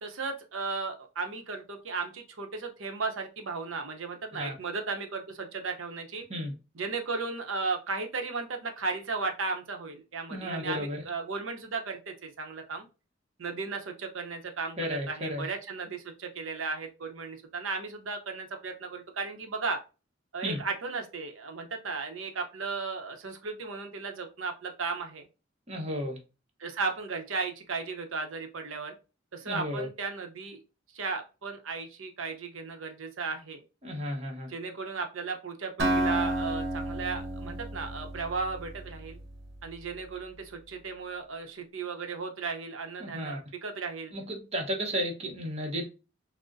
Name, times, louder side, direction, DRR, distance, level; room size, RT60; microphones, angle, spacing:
voice 1, 0.0-6.2 6.7-12.8 13.4-19.8 20.3-25.3 26.6-29.0 29.3-30.6 30.9-33.6 34.5-39.2 39.6-44.1, right 4 dB, 80° right, 0.8 m, -35 dB
voice 2, 10.3-11.0 14.8-15.5 20.4-20.6 25.7-26.2 29.5-29.9 33.8-34.5 43.0-43.4 44.1-45.9, equal, 30° right, 0.9 m, -33 dB
Acoustic guitar, 35.8-39.6, right 1 dB, 55° right, 1.0 m, -31 dB
6.1 x 2.1 x 2.6 m
head